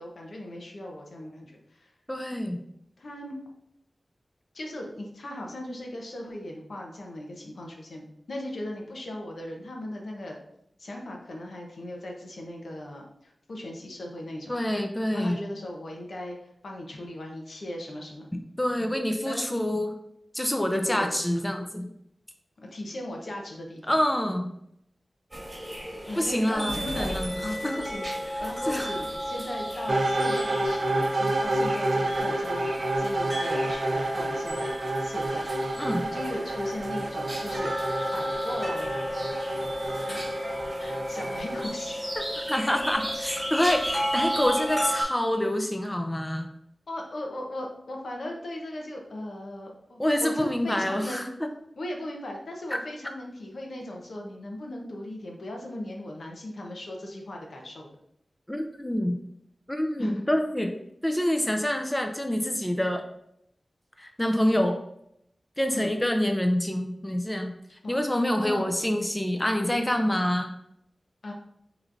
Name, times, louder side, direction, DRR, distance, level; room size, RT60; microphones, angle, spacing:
voice 1, 0.0-1.9 3.0-3.3 4.5-10.4 10.8-14.6 15.1-16.4 16.6-18.3 19.2-19.5 20.7-21.2 22.6-23.8 26.1-28.1 28.4-34.7 35.0-35.5 36.1-37.7 38.1-38.9 40.1-40.5 40.8-42.0 46.9-51.3 51.8-57.9 60.0-60.2 65.7-65.9 67.8-68.0 68.4-68.7 71.2-71.3, left 1 dB, 80° left, 0 dB, 0.9 m, -38 dB
voice 2, 2.1-2.6 14.5-15.4 18.6-19.9 20.3-21.9 23.9-24.5 26.2-27.7 28.3-28.9 35.8-36.1 42.4-46.5 50.0-51.5 58.5-59.2 59.7-60.8 61.0-63.0 64.0-64.8 65.6-70.5, left 1 dB, 15° left, 4 dB, 0.5 m, -27 dB
sound 1, 25.3-45.0, equal, 15° right, 1.4 m, -33 dB
sound 2, 29.9-41.7, right 1 dB, 65° right, 0.6 m, -29 dB
6.0 x 3.1 x 2.6 m, 0.75 s
wide cardioid pair, 90°, 0 cm